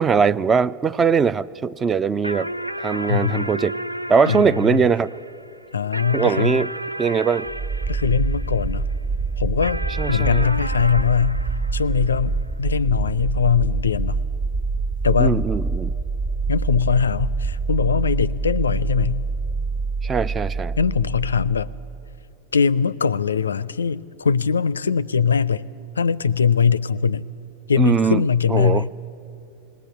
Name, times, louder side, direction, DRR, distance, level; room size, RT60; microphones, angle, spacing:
voice 1, 0.0-2.5 2.8-3.8 4.1-5.1 6.1-6.7 7.0-7.5 10.0-10.4 15.2-15.9 20.0-20.8 27.8-28.2 28.5-28.8, right 6 dB, 20° right, 18 dB, 0.4 m, -20 dB
sound 1, 2.2-8.9 9.6-12.4, equal, 90° right, 0.4 m, -33 dB
voice 2, 3.1-3.5 4.3-4.9 5.7-6.6 7.9-8.9 9.4-11.4 11.7-14.2 15.0-15.4 16.5-19.2 20.8-21.7 22.5-25.6 26.0-27.2 27.7-28.9, left 6 dB, 70° left, 19 dB, 0.4 m, -21 dB
sound 2, 7.5-22.3, right 4 dB, 50° right, 1.6 m, -26 dB
20.0 x 18.5 x 8.2 m, 2.7 s
figure-of-eight pair, 90°, 0 cm